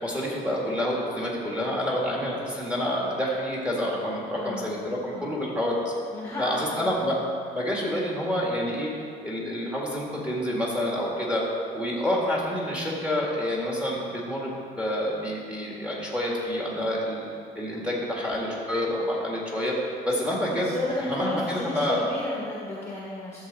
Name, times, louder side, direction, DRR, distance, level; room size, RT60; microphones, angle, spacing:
voice 1, 0.0-5.9 6.4-7.2 7.5-8.9 9.2-11.4 11.7-17.2 17.6-19.7 20.0-22.0, left 1 dB, 5° right, -4 dB, 1.9 m, -28 dB
voice 2, 4.3-4.8 5.1-5.4 6.1-7.2 20.1-20.2 20.5-23.5, left 2 dB, 15° left, -5 dB, 1.3 m, -33 dB
12.5 x 7.3 x 4.1 m, 2.3 s
cardioid pair, 160°, 18 cm